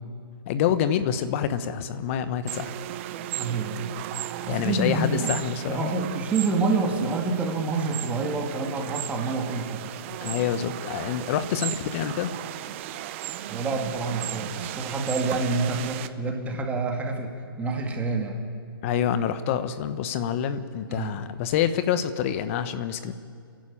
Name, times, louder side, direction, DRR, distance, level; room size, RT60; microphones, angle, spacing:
voice 1, 0.5-2.7 4.5-5.9 10.2-12.3 18.8-23.1, left 9 dB, 35° left, 12 dB, 1.1 m, -27 dB
sound 1, 2.5-16.1, right 13 dB, 30° right, 0.8 m, -36 dB
voice 2, 3.3-4.0 4.4-5.3 5.7-10.0 13.5-17.3 17.6-18.4 20.9-21.1, right 3 dB, 10° right, 2 dB, 2.2 m, -27 dB
30.0 x 11.5 x 8.7 m, 2.2 s
hypercardioid pair, 150°, 13 cm